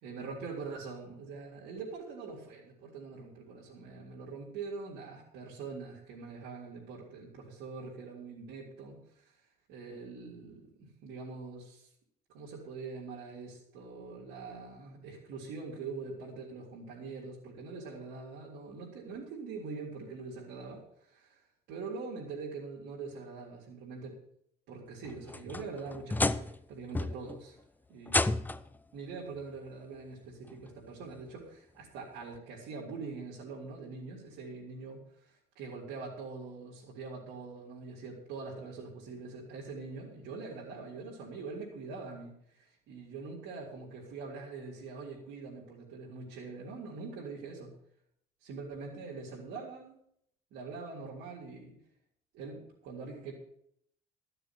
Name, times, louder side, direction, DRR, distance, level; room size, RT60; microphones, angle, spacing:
voice 1, 0.0-9.3 9.7-11.9 12.3-21.4 21.7-24.2 24.7-27.6 27.9-28.5 28.9-47.7 48.4-50.0 50.5-51.7 52.3-53.3, right 4 dB, 85° right, -6 dB, 3.5 m, -43 dB
sound 1, 25.0-26.6 26.9-27.4 28.1-28.8 29.9-30.0 30.7-30.8 32.3-32.4, left 2 dB, 10° left, 0.5 m, -31 dB
13.5 x 6.8 x 7.6 m, 0.68 s
cardioid pair, 110°, 17 cm